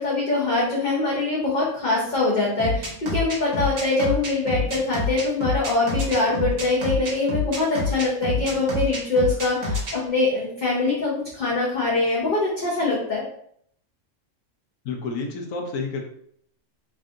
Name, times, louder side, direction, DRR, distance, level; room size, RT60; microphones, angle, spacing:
voice 1, 0.0-13.2, left 2 dB, 45° left, -6 dB, 0.7 m, -23 dB
sound 1, 2.6-9.9, left 3 dB, 70° right, 1.3 m, -26 dB
voice 2, 14.8-16.0, left 4 dB, 85° left, 2 dB, 1.0 m, -29 dB
3.4 x 2.4 x 2.6 m, 0.67 s
omnidirectional pair, 1.3 m